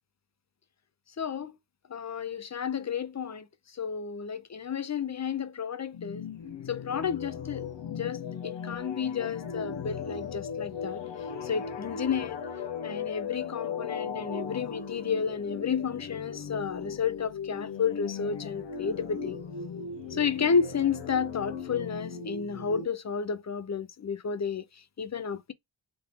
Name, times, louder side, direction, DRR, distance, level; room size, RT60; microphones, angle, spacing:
voice 1, 1.2-1.6 1.9-3.5 3.7-6.3 6.7-11.0 11.4-12.4 12.8-19.4 20.1-24.6 25.0-25.5, left 6 dB, 40° left, 0.7 m, -31 dB
sound 1, 5.9-22.9, left 6 dB, 80° left, 0.9 m, -38 dB
3.8 x 2.7 x 3.7 m
cardioid pair, 55°, 44 cm